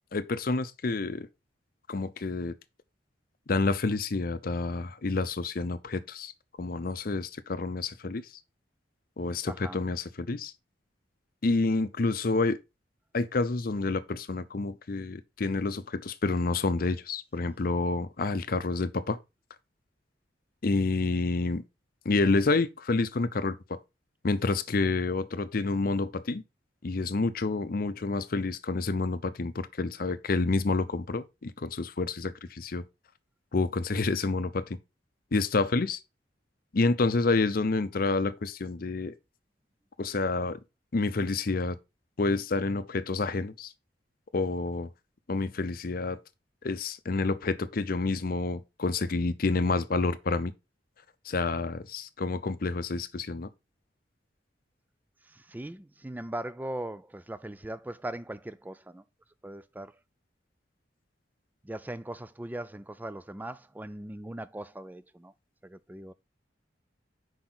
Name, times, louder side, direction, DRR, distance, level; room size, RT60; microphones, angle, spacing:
voice 1, 0.1-1.3 1.9-2.6 3.5-6.3 6.6-8.2 9.2-10.5 11.4-12.6 13.1-19.2 20.6-21.6 22.0-23.8 24.2-26.4 26.8-32.8 33.5-34.8 35.3-36.0 36.7-39.1 40.0-40.6 40.9-41.8 42.2-43.7 44.3-44.9 45.3-46.2 46.6-50.5 51.3-53.5, left 3 dB, 50° left, 0.6 m, -28 dB
voice 2, 9.5-9.8 55.3-59.0 59.4-59.9 61.6-65.3 65.6-66.1, right 1 dB, 10° right, 0.3 m, -39 dB
6.1 x 4.9 x 3.8 m
head